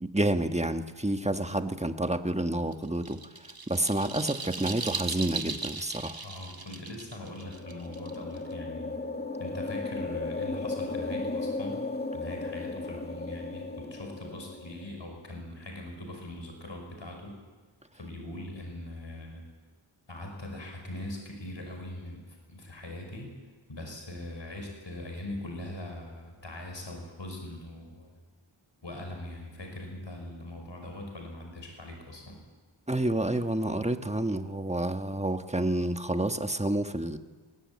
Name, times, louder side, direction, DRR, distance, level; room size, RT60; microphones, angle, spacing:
voice 1, 0.0-3.2 3.7-6.2 32.9-37.2, right 1 dB, 15° right, 8 dB, 1.4 m, -29 dB
sound 1, 2.7-8.5, right 4 dB, 50° right, 1.7 m, -38 dB
voice 2, 6.2-8.9 9.4-17.4 17.9-19.4 20.1-23.3 23.7-28.1 28.8-32.4, left 1 dB, 65° left, 2 dB, 5.6 m, -41 dB
sound 2, 7.2-14.9, left 3 dB, 20° left, 1.9 m, -35 dB
21.5 x 19.0 x 8.7 m, 1.4 s
wide cardioid pair, 50°, 48 cm